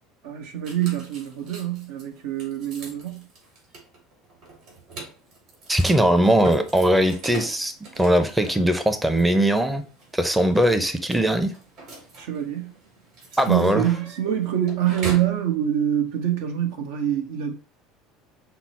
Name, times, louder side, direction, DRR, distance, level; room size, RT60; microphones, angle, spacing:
voice 1, 0.2-3.3 6.2-6.3 12.2-12.7 13.5-17.5, right 11 dB, 80° right, 0.9 m, -25 dB
sound 1, 0.6-15.4, right 4 dB, 60° right, 2.6 m, -41 dB
voice 2, 5.7-9.8 10.1-11.5 13.4-13.8, right 1 dB, 5° right, 0.5 m, -20 dB
5.9 x 2.0 x 4.1 m
supercardioid pair, 115°, 0 cm